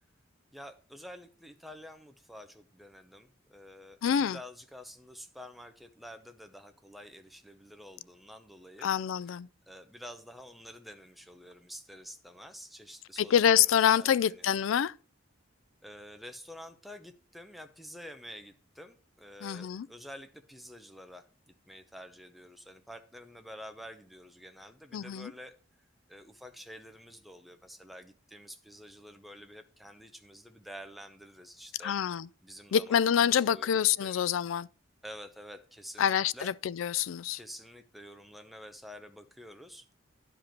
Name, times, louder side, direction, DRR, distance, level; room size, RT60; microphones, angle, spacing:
voice 1, 0.5-8.9 9.7-13.3 13.6-14.7 15.8-25.5 26.1-31.9 32.4-33.0 33.2-34.2 35.0-36.5 37.3-39.9, equal, ahead, 0.7 m, -49 dB
voice 2, 4.0-4.4 8.8-9.5 13.2-14.9 19.4-19.9 24.9-25.3 31.8-32.3 32.7-34.7 36.0-37.4, left 8 dB, 80° left, 0.3 m, -26 dB
10.5 x 5.1 x 4.4 m
head